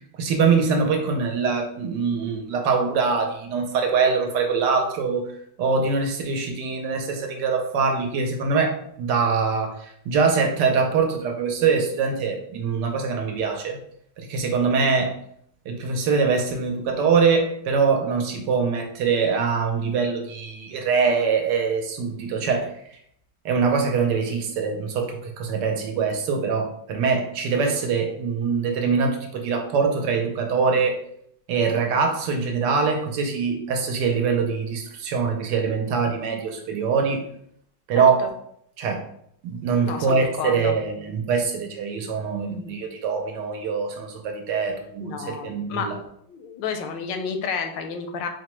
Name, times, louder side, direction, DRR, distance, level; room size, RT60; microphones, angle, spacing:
voice 1, 0.2-5.3 5.6-13.8 14.2-15.1 15.7-22.7 23.4-31.0 31.5-37.2 37.9-38.3 38.8-39.0 39.4-46.0, right 5 dB, 75° right, 3 dB, 1.2 m, -23 dB
voice 2, 37.9-38.3 39.8-40.7 42.5-42.8 45.0-45.9 46.3-48.3, left 6 dB, 80° left, 6 dB, 1.2 m, -31 dB
4.6 x 2.1 x 3.0 m, 0.70 s
omnidirectional pair, 2.0 m